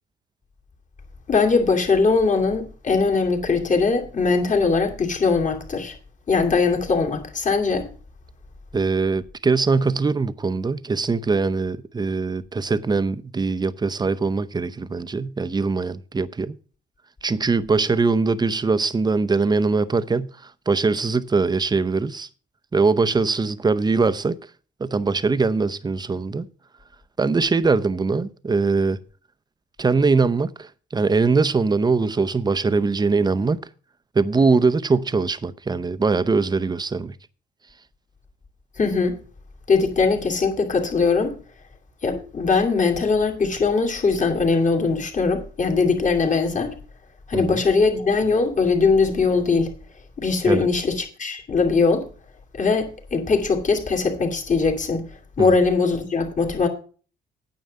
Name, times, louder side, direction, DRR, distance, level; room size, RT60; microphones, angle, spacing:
voice 1, 1.3-5.9 6.3-7.9 38.8-39.2 39.7-41.4 42.0-46.7 47.3-49.7 50.2-52.1 52.5-55.1 55.4-56.7, left 4 dB, 40° left, 2.6 m, -21 dB
voice 2, 8.7-16.6 17.2-22.3 22.7-24.4 24.8-26.5 27.2-29.0 29.8-33.6 34.1-37.2 47.3-47.6 50.4-50.7 55.4-55.5, right 4 dB, 20° right, 0.6 m, -22 dB
9.3 x 6.9 x 6.5 m
cardioid pair, 90°, 20 cm